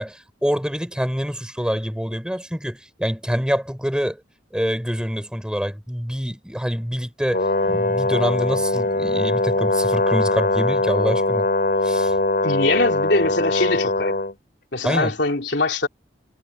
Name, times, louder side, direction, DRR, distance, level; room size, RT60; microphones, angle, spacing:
voice 1, 0.0-4.2 4.5-11.5 11.8-12.1 14.8-15.1, equal, 5° right, 4.7 m, -26 dB
Brass instrument, 7.3-14.3, left 2 dB, 50° left, 6.2 m, -21 dB
voice 2, 12.4-14.2 14.7-15.9, left 2 dB, 70° left, 3.3 m, -22 dB
head